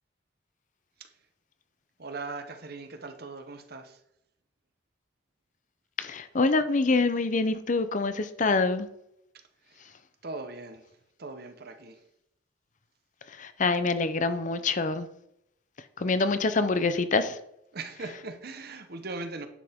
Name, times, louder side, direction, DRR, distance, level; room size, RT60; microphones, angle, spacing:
voice 1, 2.0-4.0 9.7-9.9 10.2-10.8 11.2-12.0 17.7-19.5, right 3 dB, 55° right, 1.0 m, -39 dB
voice 2, 6.0-8.9 13.3-15.1 16.0-17.4, left 3 dB, 45° left, 0.6 m, -26 dB
9.8 x 7.1 x 3.6 m
head